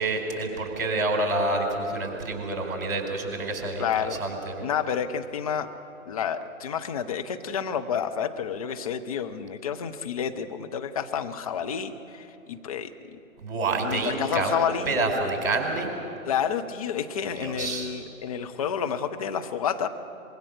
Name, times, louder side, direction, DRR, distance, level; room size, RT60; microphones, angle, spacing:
voice 1, 0.0-4.7 13.4-15.9 17.4-17.9, right 2 dB, 45° right, 3 dB, 4.5 m, -28 dB
voice 2, 3.8-4.2 4.6-5.7 6.1-13.2 13.8-15.0 16.3-19.9, left 8 dB, 25° left, 6 dB, 0.7 m, -30 dB
24.0 x 22.0 x 6.5 m, 3.0 s
figure-of-eight pair, 130°, 42 cm